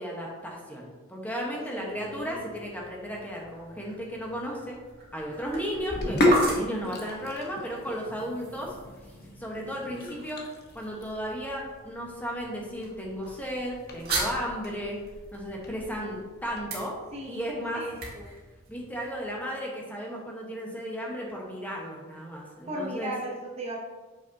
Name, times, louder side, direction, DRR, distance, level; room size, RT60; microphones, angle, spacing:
voice 1, 0.0-4.8 5.1-8.8 9.4-10.4 10.7-15.0 15.3-17.0 17.3-17.8 18.7-23.1, equal, 10° left, -2 dB, 1.1 m, -34 dB
sound 1, 1.6-19.5, right 2 dB, 45° right, 1.8 m, -40 dB
voice 2, 1.7-2.4 17.1-18.3 22.7-23.8, right 1 dB, 30° right, -2 dB, 0.8 m, -36 dB
Sink (filling or washing), 5.8-16.6, left 1 dB, 45° left, 1.0 m, -32 dB
6.9 x 5.8 x 2.7 m, 1.3 s
head